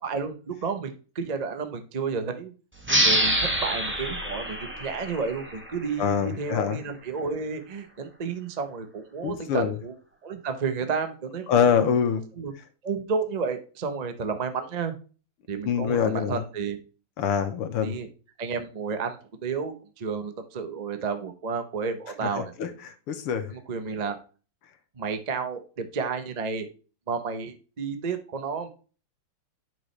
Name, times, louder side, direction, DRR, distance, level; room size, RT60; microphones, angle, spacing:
voice 1, 0.0-2.5 2.9-9.9 10.2-11.5 12.3-12.5 12.8-14.9 15.5-16.8 17.8-18.1 18.4-19.2 19.4-22.7 23.5-24.2 25.0-26.7 27.1-28.7, right 5 dB, 65° right, 7 dB, 0.4 m, -31 dB
sound 1, 2.8-6.1, right 1 dB, 10° right, 0.8 m, -26 dB
voice 2, 6.0-6.8 9.2-9.8 11.5-12.2 15.7-16.4 17.2-17.9 22.6-23.5, left 7 dB, 90° left, 8 dB, 2.0 m, -25 dB
10.5 x 6.1 x 3.3 m, 0.36 s
omnidirectional pair, 2.4 m